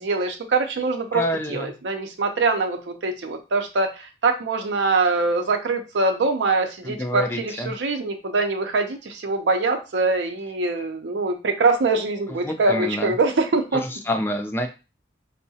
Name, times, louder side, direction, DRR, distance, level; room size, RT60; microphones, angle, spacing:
voice 1, 0.0-1.2 1.5-13.8, right 3 dB, 80° right, 4 dB, 0.5 m, -23 dB
voice 2, 1.1-1.7 6.8-7.7 12.4-13.1 13.7-14.7, left 1 dB, 10° left, 5 dB, 0.4 m, -27 dB
4.5 x 2.0 x 2.7 m, 0.30 s
head